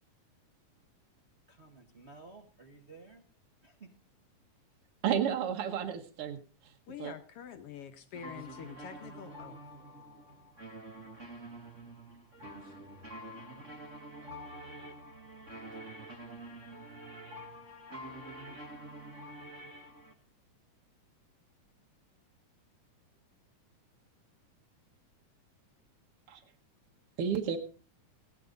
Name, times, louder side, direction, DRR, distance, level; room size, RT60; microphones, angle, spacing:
voice 1, 1.5-3.2 3.6-3.9, right 3 dB, 85° right, 0.5 m, -54 dB
voice 2, 5.0-6.7 7.0-7.1 26.3-26.4 27.2-27.6, right 8 dB, 60° right, 1.6 m, -32 dB
voice 3, 6.9-9.6, left 8 dB, 70° left, 1.5 m, -46 dB
voice 4, 8.1-20.1, right 1 dB, 45° right, 1.0 m, -47 dB
16.5 x 10.0 x 3.9 m
omnidirectional pair, 3.7 m